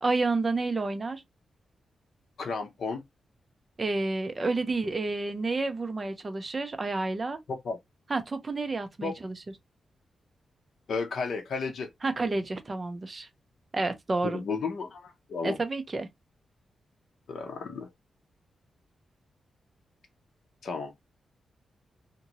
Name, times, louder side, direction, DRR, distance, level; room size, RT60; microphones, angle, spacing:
voice 1, 0.0-1.2 3.8-7.4 8.1-9.3 12.0-13.3 13.7-14.4 15.4-16.1, right 3 dB, 30° right, 0.6 m, -30 dB
voice 2, 2.4-3.0 7.5-7.8 9.0-9.1 10.9-11.9 14.2-15.6 17.3-17.9 20.6-20.9, left 4 dB, 65° left, 0.7 m, -33 dB
2.6 x 2.6 x 2.9 m
wide cardioid pair, 125°, 0 cm